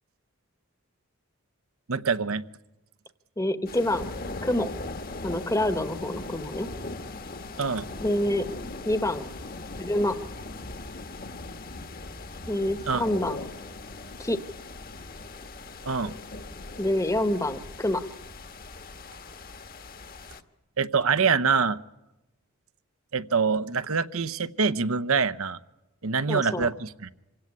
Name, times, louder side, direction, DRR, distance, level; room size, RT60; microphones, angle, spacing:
voice 1, 1.9-2.4 7.6-7.9 12.9-13.0 15.9-16.1 20.8-21.8 23.1-25.6 26.0-27.1, right 5 dB, 70° right, 12 dB, 0.8 m, -25 dB
voice 2, 3.4-4.0 4.4-4.7 5.2-6.7 8.0-8.5 8.8-9.2 9.8-10.2 12.5-13.4 14.2-14.4 16.8-18.0 26.3-26.7, left 1 dB, 15° left, 12 dB, 1.1 m, -26 dB
sound 1, 3.7-20.4, left 2 dB, 40° left, 1.3 m, -39 dB
26.5 x 17.0 x 9.7 m, 1.0 s
head